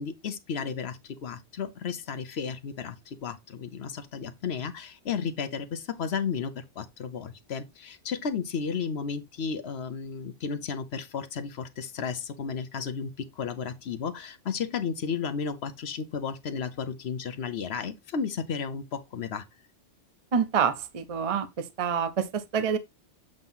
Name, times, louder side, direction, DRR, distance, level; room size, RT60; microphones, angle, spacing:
voice 1, 0.0-19.4, left 6 dB, 65° left, 1.0 m, -33 dB
voice 2, 20.3-22.8, right 7 dB, 35° right, 0.7 m, -27 dB
7.8 x 2.9 x 5.5 m
omnidirectional pair, 1.2 m